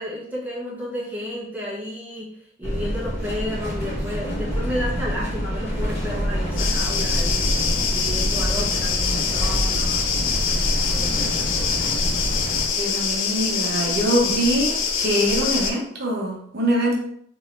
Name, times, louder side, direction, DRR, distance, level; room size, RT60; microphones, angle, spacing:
voice 1, 0.0-11.9, left 1 dB, 10° right, -6 dB, 0.9 m, -33 dB
sound 1, 2.6-12.6, equal, 35° left, 1.5 m, -26 dB
sound 2, 6.6-15.7, left 5 dB, 80° left, 0.5 m, -24 dB
voice 2, 12.8-17.0, right 1 dB, 55° right, -2 dB, 0.8 m, -23 dB
3.8 x 3.0 x 2.5 m, 0.67 s
head